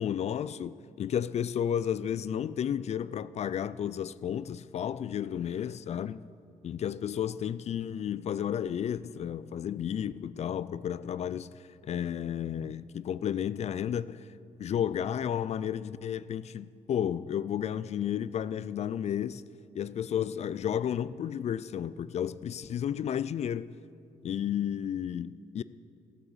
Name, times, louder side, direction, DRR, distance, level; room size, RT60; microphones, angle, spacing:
voice 1, 0.0-6.2 6.6-14.3 14.6-19.4 19.7-23.7 24.2-25.6, left 9 dB, 50° left, 0.4 m, -32 dB
15.5 x 8.0 x 7.1 m
cardioid pair, 105°, 15 cm